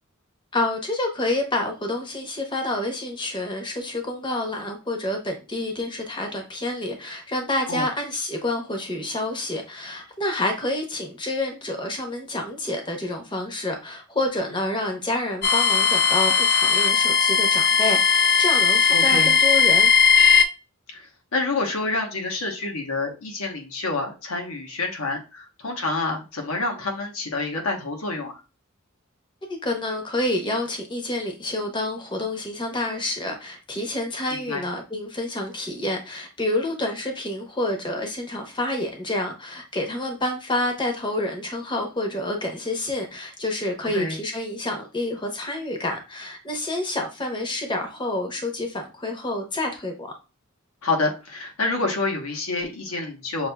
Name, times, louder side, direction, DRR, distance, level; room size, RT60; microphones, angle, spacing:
voice 1, 0.5-19.9 29.4-50.1, left 1 dB, 20° left, 3 dB, 0.8 m, -28 dB
sound 1, 15.4-20.5, left 6 dB, 50° left, 0.4 m, -18 dB
voice 2, 18.9-19.3 20.9-28.4 34.3-34.6 43.9-44.2 50.8-53.5, left 3 dB, 85° left, 2 dB, 1.1 m, -28 dB
6.2 x 2.7 x 2.2 m, 0.30 s
head